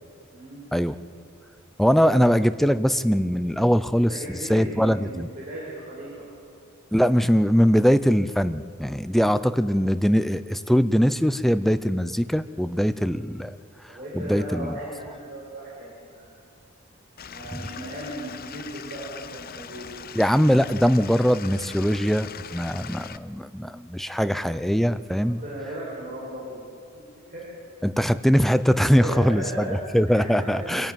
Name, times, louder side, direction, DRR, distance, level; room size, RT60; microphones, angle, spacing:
voice 1, 1.8-5.3 6.9-13.6 14.1-14.7 20.2-25.4 27.8-30.9, equal, ahead, 12 dB, 0.5 m, -21 dB
voice 2, 3.9-6.2 13.9-16.3 17.2-19.9 25.2-26.6 27.3-27.4 28.9-29.8 30.1-30.9, right 1 dB, 40° right, -6 dB, 5.8 m, -36 dB
Stream / Liquid, 17.2-23.2, left 8 dB, 45° left, 0.7 m, -41 dB
26.0 x 15.0 x 9.1 m, 2.5 s
head